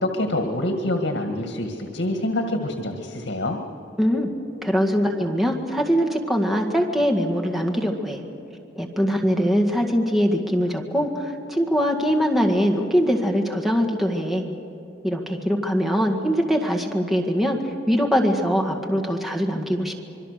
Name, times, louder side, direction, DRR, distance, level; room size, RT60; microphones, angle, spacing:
voice 1, 0.0-3.6, left 1 dB, 80° left, 4 dB, 1.9 m, -26 dB
voice 2, 4.0-4.3 4.6-8.2 8.8-14.5 15.0-19.9, equal, ahead, 0 dB, 1.9 m, -22 dB
26.0 x 23.5 x 6.7 m, 2.9 s
head